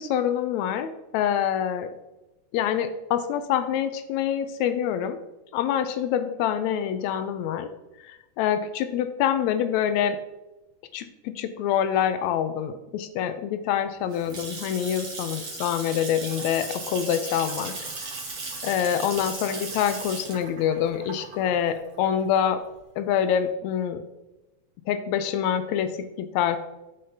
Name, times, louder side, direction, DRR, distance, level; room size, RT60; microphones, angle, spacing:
voice 1, 0.0-1.9 2.5-5.2 5.5-7.7 8.0-10.2 10.9-17.7 18.6-22.6 23.0-24.0 24.9-26.6, left 9 dB, 80° left, 10 dB, 1.6 m, -26 dB
Water tap faucet / Sink (filling or washing) / Splash splatter, 13.9-22.7, right 3 dB, 50° right, 2.2 m, -36 dB
12.0 x 5.1 x 2.8 m, 1.0 s
omnidirectional pair, 3.7 m